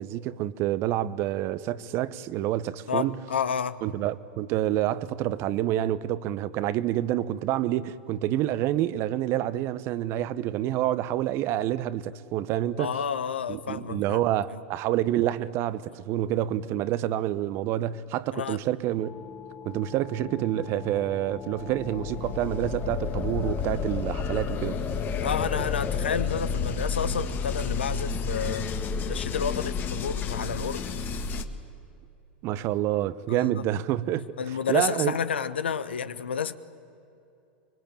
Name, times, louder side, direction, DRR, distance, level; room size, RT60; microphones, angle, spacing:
voice 1, 0.0-3.2 3.8-12.9 13.5-19.1 19.6-24.8 32.4-34.2 34.7-35.2, right 13 dB, 45° right, 1.0 m, -28 dB
voice 2, 2.9-3.8 12.8-14.6 18.3-18.6 25.2-28.7 29.0-30.9 33.3-33.5 34.4-36.5, left 7 dB, 85° left, 1.0 m, -30 dB
sound 1, 19.0-31.4, left 5 dB, 35° left, 1.8 m, -31 dB
25.0 x 22.5 x 8.8 m
hypercardioid pair, 95°, 6 cm